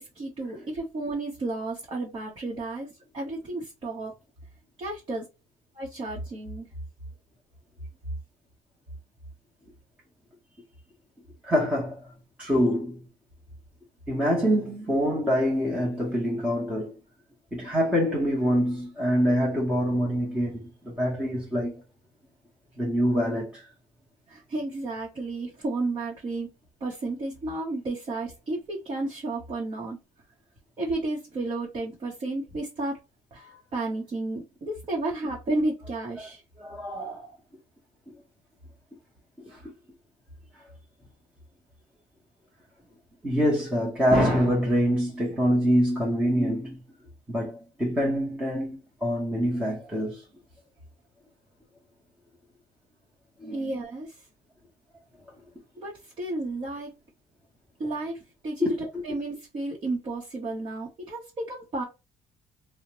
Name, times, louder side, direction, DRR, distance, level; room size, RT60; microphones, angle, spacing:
voice 1, 0.0-2.9 3.1-4.1 4.8-5.3 5.7-6.7 24.3-26.5 26.8-30.0 30.8-33.0 33.3-36.4 53.5-54.2 55.8-56.9 57.8-61.8, right 2 dB, 40° right, 0.9 m, -32 dB
voice 2, 11.4-12.1 12.4-13.0 14.1-16.9 17.5-21.8 22.8-23.7 33.4-33.6 36.2-36.3 36.6-37.4 39.4-39.7 43.2-46.8 47.3-50.2 53.4-53.7 58.6-59.0, equal, 10° right, 0.9 m, -25 dB
2.8 x 2.1 x 2.9 m
cardioid pair, 125°, 13 cm